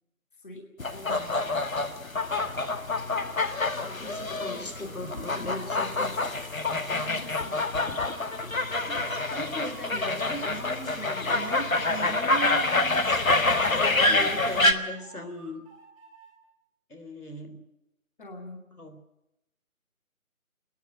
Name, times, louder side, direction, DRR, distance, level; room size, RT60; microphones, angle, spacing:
sound 1, 0.8-14.7, left 2 dB, 65° left, 1.9 m, -27 dB
voice 1, 0.9-1.4 5.4-5.6 6.9-7.7 18.2-18.6, left 1 dB, 35° left, 2 dB, 2.9 m, -43 dB
voice 2, 3.7-6.2 8.9-15.6 16.9-17.6 18.7-19.0, equal, 85° left, 6 dB, 3.7 m, -39 dB
sound 2, 4.7-10.4 10.8-13.1 13.4-16.3, right 2 dB, 5° right, 2.9 m, -52 dB
28.5 x 10.5 x 9.1 m, 0.88 s
figure-of-eight pair, 160°, 43 cm